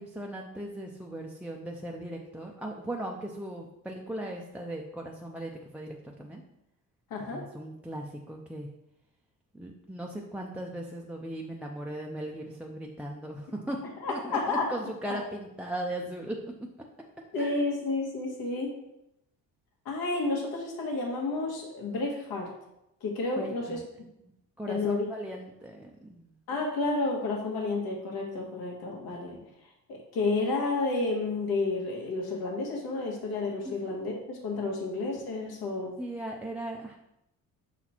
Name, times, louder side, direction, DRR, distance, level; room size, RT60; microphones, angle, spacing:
voice 1, 0.0-6.4 7.2-8.7 9.5-13.8 14.1-16.5 17.4-17.6 23.4-23.8 24.6-26.3 29.1-29.2 33.6-33.7 36.0-37.0, right 1 dB, 5° right, -1 dB, 0.4 m, -38 dB
voice 2, 7.1-7.5 14.0-14.8 15.1-15.2 17.3-18.7 19.9-22.5 23.0-23.8 24.7-25.1 26.5-29.4 29.9-36.0, left 3 dB, 85° left, -1 dB, 1.8 m, -31 dB
5.9 x 4.1 x 4.3 m, 0.85 s
cardioid pair, 140°, 36 cm